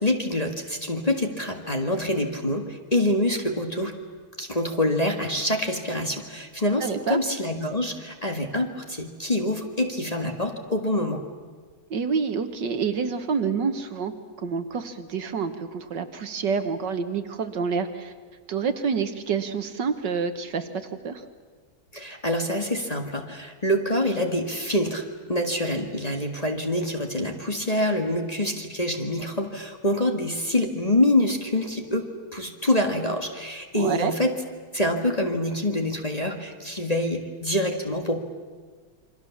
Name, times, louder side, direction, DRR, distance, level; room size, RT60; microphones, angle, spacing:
voice 1, 0.0-4.0 4.4-11.2 21.9-34.4 34.7-38.2, left 1 dB, 20° left, 2 dB, 1.7 m, -26 dB
voice 2, 6.8-7.2 11.9-18.1 18.5-21.2 33.7-34.1, right 5 dB, 60° right, 9 dB, 1.8 m, -28 dB
28.5 x 24.0 x 7.2 m, 1.5 s
omnidirectional pair, 2.2 m